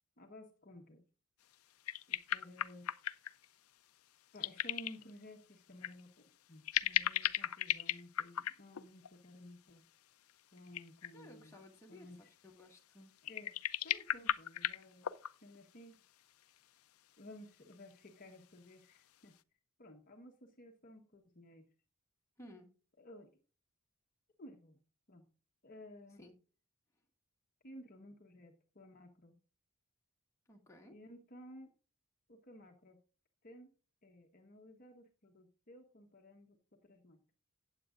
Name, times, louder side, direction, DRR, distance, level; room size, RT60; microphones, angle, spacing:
voice 1, 0.2-1.1 2.1-2.9 4.3-9.8 10.5-11.6 11.9-12.3 13.2-15.1 15.4-16.0 17.2-19.3 19.8-21.7 23.0-23.3 24.4-24.8 25.1-25.3 25.6-26.3 27.6-29.4 30.9-31.7 32.3-33.0 33.4-33.7 34.0-37.2, left 1 dB, 40° left, 2 dB, 1.2 m, -55 dB
sound 1, 1.5-1.6 1.9-3.4 4.4-5.1 5.8-6.0 6.6-9.1 10.3-10.4 10.6-11.3 13.2-15.6 16.6-16.7 17.7-17.9, left 11 dB, 75° left, 0.6 m, -36 dB
voice 2, 11.1-13.1 22.4-22.7 26.2-26.3 30.5-31.0, left 1 dB, 15° left, 0 dB, 2.1 m, -56 dB
14.5 x 9.2 x 2.5 m, 0.37 s
head